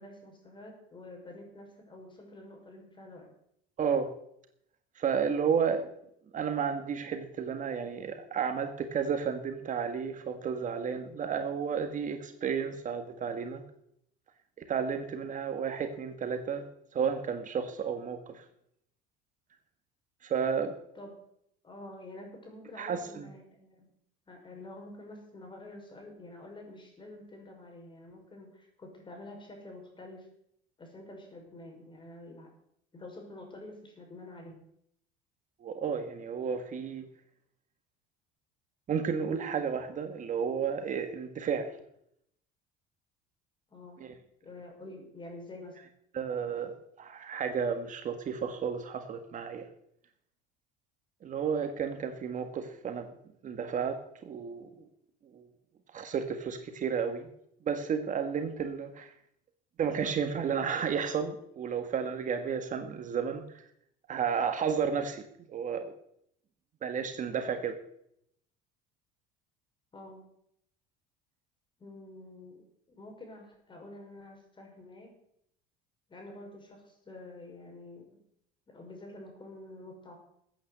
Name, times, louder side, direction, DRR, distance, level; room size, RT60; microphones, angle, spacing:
voice 1, 0.0-3.3 20.9-21.1 21.6-23.9 24.3-30.3 30.8-32.5 32.9-34.6 43.7-44.0 44.4-45.8 69.9-70.2 71.8-75.1 76.1-78.2 78.7-80.2, left 2 dB, 25° left, 3 dB, 5.7 m, -48 dB
voice 2, 3.8-4.1 4.9-5.9 6.3-13.6 14.6-16.7 16.9-18.4 20.2-20.7 22.8-23.3 35.6-37.0 38.9-41.7 44.0-44.1 46.1-49.7 51.2-53.1 53.4-54.7 55.3-55.5 55.9-57.3 57.6-59.1 59.8-63.6 64.1-65.9 66.8-67.8, right 6 dB, 40° right, 7 dB, 1.7 m, -32 dB
14.0 x 8.9 x 8.1 m, 0.73 s
supercardioid pair, 115°, 20 cm